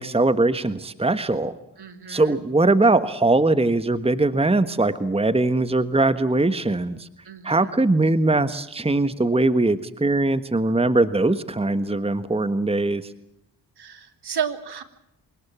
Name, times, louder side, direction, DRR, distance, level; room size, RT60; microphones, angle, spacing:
voice 1, 0.0-1.6 2.1-7.1 7.4-13.1, right 2 dB, 15° right, 13 dB, 1.5 m, -21 dB
voice 2, 1.8-2.4 7.2-7.7 13.8-14.8, right 7 dB, 60° right, 9 dB, 3.1 m, -32 dB
26.0 x 19.0 x 7.4 m, 0.82 s
supercardioid pair, 45°, 44 cm